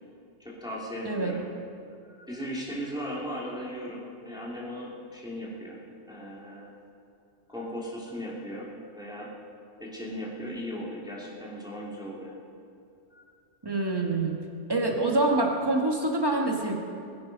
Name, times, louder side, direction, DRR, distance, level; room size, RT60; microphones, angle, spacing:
voice 1, 0.4-1.4 2.0-5.8 6.1-6.7 7.5-8.7 8.9-9.3 9.8-12.3 13.1-13.2, equal, 5° right, -6 dB, 2.8 m, -37 dB
voice 2, 1.0-1.4 13.6-14.4 14.7-16.7, right 2 dB, 20° right, 0 dB, 1.8 m, -26 dB
22.0 x 10.5 x 5.4 m, 2.5 s
omnidirectional pair, 1.3 m